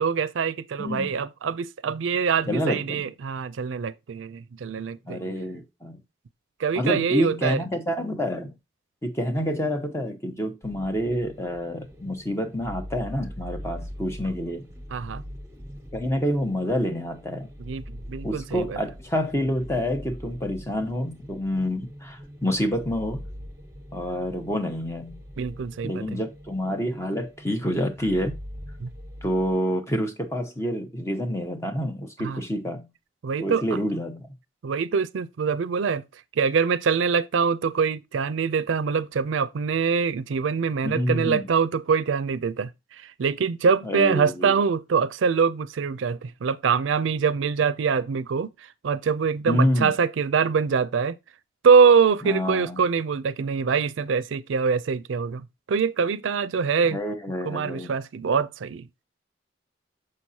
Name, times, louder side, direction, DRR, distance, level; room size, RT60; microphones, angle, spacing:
voice 1, 0.0-5.4 6.6-7.6 14.9-15.2 17.6-18.8 25.4-26.2 28.8-28.9 32.2-32.4 33.2-33.6 34.6-36.0 36.4-42.7 43.0-48.5 48.8-51.2 51.6-57.0 57.5-58.9, right 6 dB, 85° right, 0.4 m, -24 dB
voice 2, 0.8-1.1 2.5-3.0 5.1-6.0 6.8-8.5 9.0-14.7 15.9-17.5 18.2-23.2 23.9-25.2 25.8-28.3 29.2-32.9 33.4-34.3 40.8-41.4 43.8-44.5 49.5-49.9 52.2-52.8 56.9-57.9, equal, 15° left, 1.0 m, -27 dB
sound 1, 10.6-29.6, equal, 15° right, 1.2 m, -42 dB
6.5 x 6.2 x 2.8 m
head